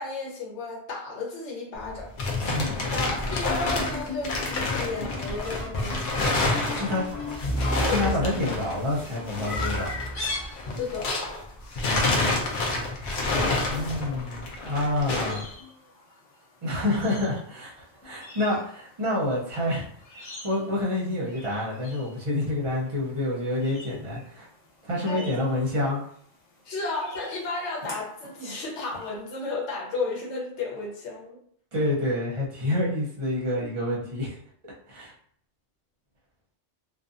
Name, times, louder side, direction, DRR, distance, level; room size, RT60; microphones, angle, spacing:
voice 1, 0.0-2.1 2.9-4.5 4.7-6.2 6.5-6.8 7.6-8.4 10.8-11.1 25.1-25.3 26.6-31.4, left 3 dB, 80° left, -2 dB, 1.1 m, -33 dB
sound 1, 1.8-11.4 11.7-15.4, left 2 dB, 55° left, 0.7 m, -28 dB
voice 2, 2.5-2.8 6.7-7.0 7.9-9.9 13.7-15.4 16.6-19.9 20.1-24.5 24.8-26.0 31.7-34.4 34.9-35.1, left 1 dB, 35° right, -5 dB, 0.7 m, -28 dB
sound 2, 3.5-11.2 11.8-12.3 12.8-13.4 14.7-14.8 15.5-15.9 18.0-18.1 20.4-20.5, equal, 15° left, 0.6 m, -35 dB
Chirp tweet, 9.4-29.1, left 3 dB, 40° left, 1.0 m, -43 dB
2.6 x 2.3 x 2.5 m, 0.63 s
omnidirectional pair, 1.2 m